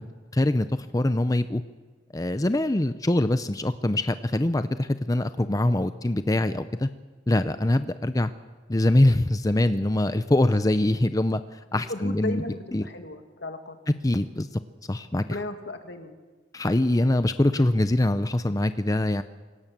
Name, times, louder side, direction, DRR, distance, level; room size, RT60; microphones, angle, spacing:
voice 1, 0.3-1.6 2.1-6.9 7.3-8.3 8.7-12.4 12.7-12.9 14.0-14.6 14.9-15.2 16.5-19.2, left 1 dB, 20° left, 11 dB, 0.6 m, -23 dB
voice 2, 11.9-13.8 15.2-16.2, left 2 dB, 75° left, 6 dB, 2.2 m, -35 dB
27.0 x 18.0 x 7.5 m, 1.3 s
head